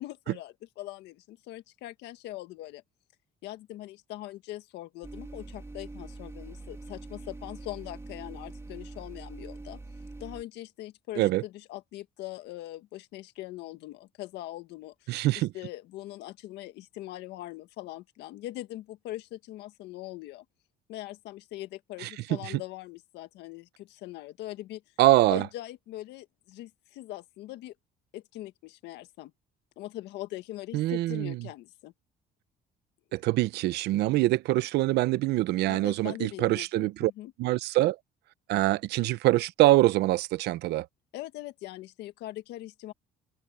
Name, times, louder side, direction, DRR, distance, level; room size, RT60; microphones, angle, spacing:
voice 1, 0.0-2.8 3.4-9.8 10.2-15.1 15.3-20.4 20.9-24.8 25.3-27.7 28.1-29.3 29.8-31.9 35.5-37.3 41.1-42.9, left 15 dB, 85° left, 1.7 m, -41 dB
sound 1, 5.0-10.4, right 2 dB, 15° right, 2.7 m, -43 dB
voice 2, 15.1-15.5 22.0-22.1 25.0-25.4 30.7-31.3 33.1-37.1 37.4-38.0 38.5-40.9, right 17 dB, 80° right, 0.8 m, -24 dB
open air
cardioid pair, 110°, 17 cm